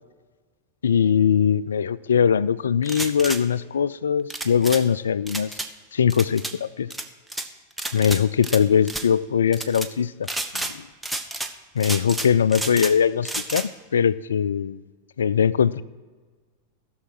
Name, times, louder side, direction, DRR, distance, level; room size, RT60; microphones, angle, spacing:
voice 1, 0.8-5.5 5.9-6.9 7.9-10.1 10.7-10.8 11.8-14.8 15.2-15.8, left 7 dB, 70° left, 20 dB, 0.3 m, -21 dB
sound 1, 2.8-3.4 4.3-4.8 5.3-5.7 6.1-6.5 6.9-7.5 7.8-8.6 8.8-9.1 9.5-9.9 10.2-10.7 11.0-11.5 11.8-12.9 13.2-13.7, right 2 dB, 5° right, 0.8 m, -30 dB
16.0 x 6.3 x 4.6 m, 1.4 s
figure-of-eight pair, 90°, 0 cm